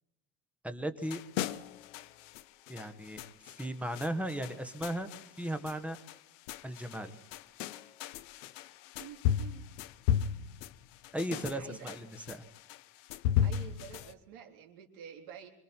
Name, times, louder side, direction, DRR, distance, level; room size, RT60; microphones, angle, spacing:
voice 1, 0.6-1.2 2.7-3.2 3.6-5.1 5.4-6.0 6.6-7.1 11.1-12.4, right 1 dB, 5° right, 8 dB, 1.3 m, -36 dB
sound 1, 1.0-14.1, left 10 dB, 90° left, 1.0 m, -36 dB
voice 2, 9.0-9.7 11.3-12.0 13.4-15.5, right 8 dB, 70° right, 2 dB, 3.7 m, -49 dB
25.0 x 24.5 x 4.5 m, 0.84 s
cardioid pair, 140°, 36 cm